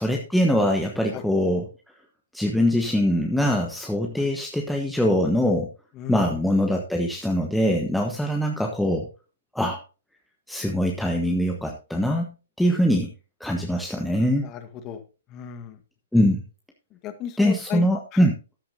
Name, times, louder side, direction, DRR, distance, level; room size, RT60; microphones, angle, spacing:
voice 1, 0.0-1.7 2.3-5.7 6.1-9.1 9.5-9.8 10.5-12.3 12.6-13.1 13.4-14.5 16.1-16.4 17.4-18.3, equal, ahead, 1 dB, 1.2 m, -23 dB
voice 2, 5.9-6.4 14.4-15.0 15.3-15.8 16.9-18.2, left 10 dB, 30° left, 9 dB, 1.5 m, -35 dB
13.0 x 10.5 x 2.7 m, 0.32 s
hypercardioid pair, 125°, 0 cm